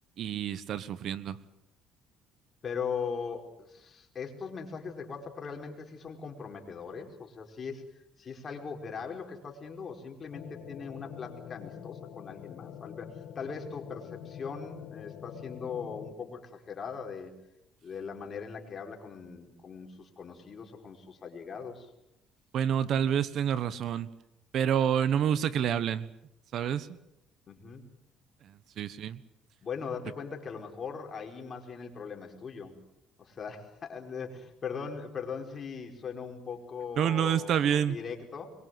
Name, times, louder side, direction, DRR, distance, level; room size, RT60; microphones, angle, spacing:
voice 1, 0.2-1.4 22.5-24.1 24.5-26.1 26.5-27.0 28.4-29.2 37.0-38.0, right 9 dB, 60° right, 15 dB, 1.3 m, -28 dB
voice 2, 2.6-17.3 17.8-21.9 27.5-27.8 29.6-32.8 33.2-38.5, left 6 dB, 35° left, 2 dB, 5.0 m, -40 dB
sound 1, 10.3-16.1, left 10 dB, 75° left, 1.8 m, -45 dB
24.5 x 22.5 x 7.8 m, 0.82 s
cardioid pair, 115°, 0 cm